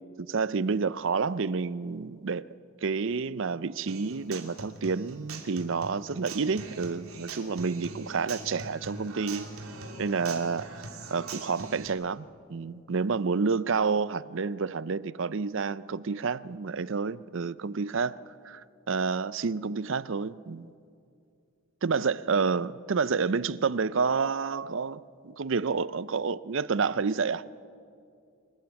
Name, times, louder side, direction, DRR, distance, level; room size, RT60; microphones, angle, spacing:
voice 1, 0.2-2.4 2.8-9.5 10.0-10.7 11.1-18.2 18.4-20.7 21.8-27.4, right 5 dB, 60° right, 17 dB, 0.5 m, -29 dB
Human voice / Acoustic guitar, 3.9-11.9, right 3 dB, 75° right, 2.8 m, -42 dB
25.5 x 20.0 x 8.8 m, 2.4 s
head